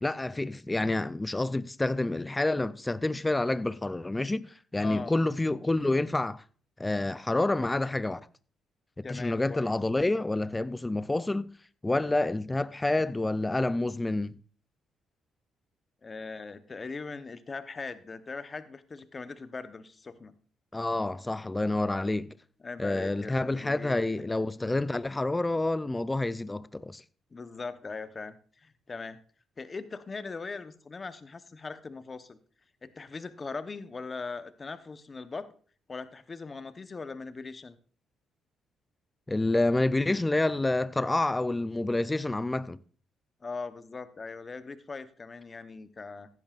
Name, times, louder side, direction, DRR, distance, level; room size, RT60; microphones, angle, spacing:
voice 1, 0.0-6.4 6.8-8.2 9.0-11.5 11.8-14.4 20.7-22.3 22.8-27.0 39.3-42.8, left 2 dB, 15° left, 0.4 m, -28 dB
voice 2, 4.8-5.1 9.0-9.7 16.0-20.3 22.6-24.0 27.3-29.2 29.6-32.4 32.8-35.5 35.9-37.8 43.4-46.3, left 4 dB, 30° left, 0.9 m, -40 dB
15.0 x 10.5 x 2.5 m
cardioid pair, 90°, 0 cm